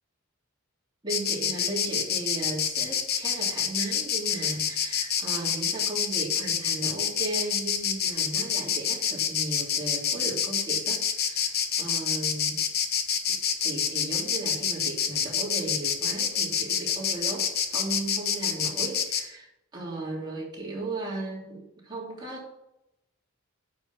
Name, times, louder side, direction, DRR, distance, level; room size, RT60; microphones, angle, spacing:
voice 1, 1.0-12.6 13.3-22.5, right 2 dB, 20° right, -3 dB, 3.1 m, -36 dB
Insect, 1.1-19.2, left 8 dB, 50° left, 1.0 m, -27 dB
9.1 x 5.6 x 7.0 m, 0.83 s
head